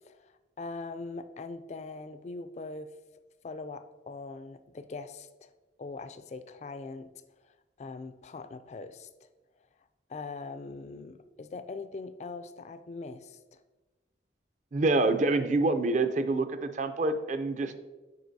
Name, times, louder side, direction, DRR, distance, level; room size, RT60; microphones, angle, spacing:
voice 1, 0.0-2.9 3.4-5.5 5.8-7.1 7.8-9.3 10.1-13.6, left 3 dB, 40° left, 11 dB, 0.3 m, -41 dB
voice 2, 14.7-17.8, right 2 dB, 40° right, 9 dB, 0.4 m, -26 dB
7.7 x 5.0 x 2.7 m, 1.2 s
head